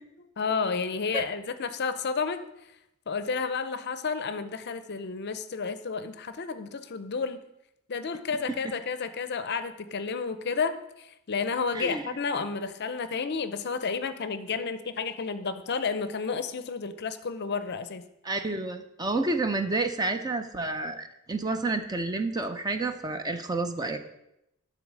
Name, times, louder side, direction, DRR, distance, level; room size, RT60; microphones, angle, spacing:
voice 1, 0.4-2.4 3.1-7.4 7.9-18.0, left 5 dB, 50° left, 12 dB, 0.5 m, -31 dB
voice 2, 11.7-12.2 18.2-24.0, right 2 dB, 20° right, 7 dB, 0.5 m, -30 dB
10.5 x 4.0 x 6.2 m, 0.83 s
head